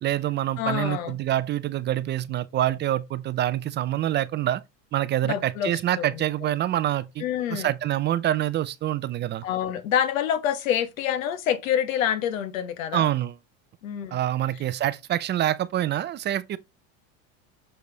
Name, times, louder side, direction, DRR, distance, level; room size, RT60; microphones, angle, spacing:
voice 1, 0.0-4.6 4.9-7.2 7.5-9.4 12.9-13.4 14.1-16.6, right 12 dB, 30° right, 0.5 m, -26 dB
voice 2, 0.6-1.2 5.2-5.7 6.0-6.1 7.2-7.7 9.4-13.1 13.8-14.2, left 9 dB, 90° left, 1.4 m, -26 dB
6.9 x 5.1 x 3.9 m
supercardioid pair, 125°, 39 cm